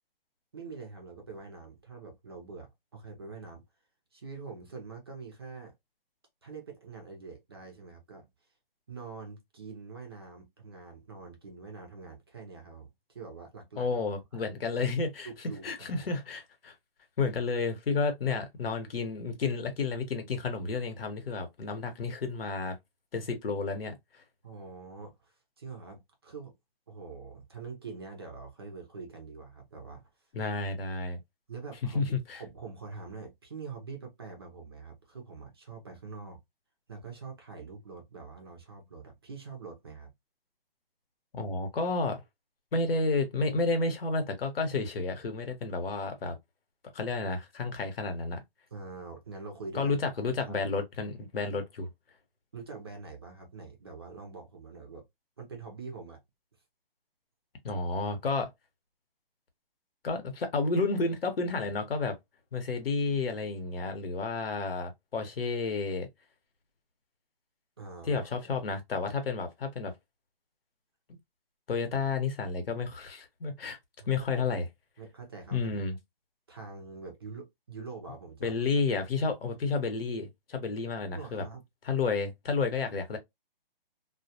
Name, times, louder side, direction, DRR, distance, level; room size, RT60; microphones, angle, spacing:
voice 1, 0.5-3.6 4.1-5.7 6.4-8.3 8.9-13.9 14.3-14.4 15.2-16.1 24.4-26.5 26.9-30.1 31.5-32.0 32.4-36.4 36.9-40.1 48.7-50.0 50.5-50.6 52.5-55.0 55.4-56.2 67.8-68.5 74.0-74.5 75.0-75.7 76.5-79.1 81.1-81.6, right 4 dB, 25° right, 0.4 m, -45 dB
voice 2, 13.8-15.3 15.6-16.7 17.2-22.8 23.1-24.2 30.3-31.2 31.9-32.4 41.3-42.2 42.7-46.4 46.9-48.4 49.7-51.9 57.6-58.5 60.0-62.2 62.5-66.1 68.1-69.9 71.7-73.8 74.1-74.7 75.5-76.0 78.4-81.4 81.8-83.2, left 4 dB, 75° left, 0.9 m, -31 dB
2.2 x 2.1 x 2.7 m
hypercardioid pair, 155°, 29 cm